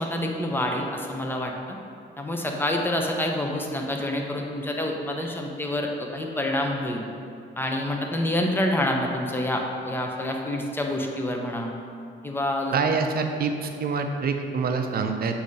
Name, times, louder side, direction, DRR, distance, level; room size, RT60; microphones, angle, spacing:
voice 1, 0.0-1.8 2.2-7.0 7.6-11.7 12.2-12.7, left 1 dB, 10° left, 1 dB, 0.7 m, -27 dB
voice 2, 12.7-15.4, right 5 dB, 50° right, 5 dB, 0.6 m, -26 dB
7.0 x 2.8 x 5.2 m, 2.4 s
cardioid pair, 90°, 20 cm